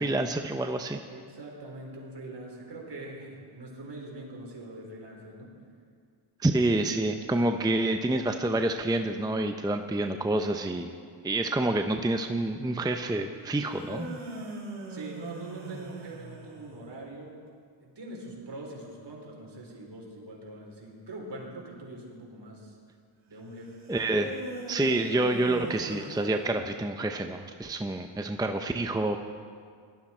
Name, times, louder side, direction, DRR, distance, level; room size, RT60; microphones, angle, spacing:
voice 1, 0.0-1.0 6.4-10.9 11.2-14.2 23.9-24.4 24.7-29.2, right 2 dB, 10° right, 6 dB, 0.6 m, -28 dB
voice 2, 1.1-5.5 14.9-17.4 17.8-22.8 23.3-23.8, right 2 dB, 55° right, -1 dB, 4.1 m, -43 dB
sound 1, 13.6-16.9 24.0-27.0, right 1 dB, 70° right, 4.5 m, -40 dB
18.0 x 12.5 x 4.4 m, 2.1 s
cardioid pair, 80°, 50 cm